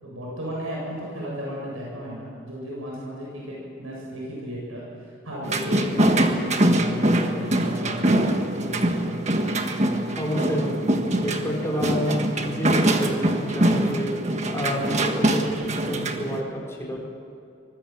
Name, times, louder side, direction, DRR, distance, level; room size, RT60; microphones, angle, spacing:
voice 1, 0.0-8.2 8.6-8.9, equal, 85° right, -4 dB, 7.9 m, -35 dB
sound 1, 5.4-16.4, right 1 dB, 35° right, 1.6 m, -23 dB
voice 2, 10.2-14.1 14.5-17.0, equal, 15° left, -3 dB, 5.0 m, -29 dB
24.5 x 20.5 x 7.5 m, 2.6 s
head